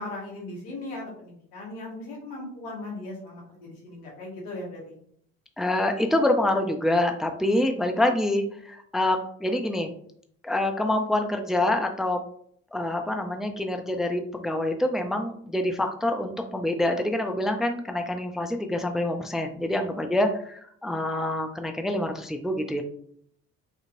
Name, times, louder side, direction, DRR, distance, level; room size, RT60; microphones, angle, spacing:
voice 1, 0.0-4.9, left 2 dB, 75° left, -2 dB, 1.8 m, -38 dB
voice 2, 5.6-9.9 10.4-12.2 12.7-22.8, left 1 dB, ahead, 5 dB, 0.6 m, -26 dB
5.4 x 2.9 x 2.6 m, 0.63 s
hypercardioid pair, 55°, 37 cm